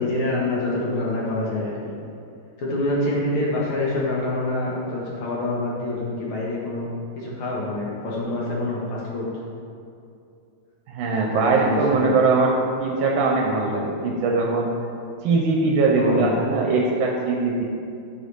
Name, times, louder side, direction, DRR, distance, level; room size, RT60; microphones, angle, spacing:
voice 1, 0.0-2.0 2.6-6.9 7.2-9.3 11.1-12.2 16.0-16.3, left 2 dB, 85° left, -5 dB, 1.8 m, -26 dB
voice 2, 10.9-14.7 15.2-17.6, right 3 dB, 80° right, -1 dB, 1.4 m, -21 dB
9.4 x 4.0 x 3.2 m, 2.5 s
omnidirectional pair, 2.2 m